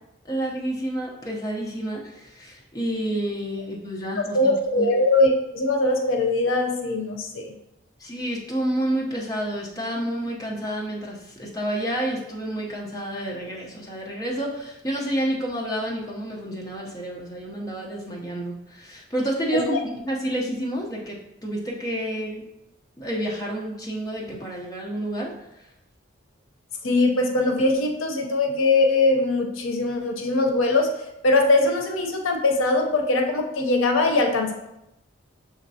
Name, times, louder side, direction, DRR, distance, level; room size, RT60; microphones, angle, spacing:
voice 1, 0.2-4.9 8.0-22.4 23.0-25.7, right 1 dB, 20° left, -2 dB, 0.6 m, -29 dB
voice 2, 4.2-7.5 19.5-19.6 26.8-30.9 31.2-34.5, left 2 dB, 85° left, 3 dB, 0.7 m, -21 dB
6.3 x 3.1 x 2.7 m, 0.89 s
head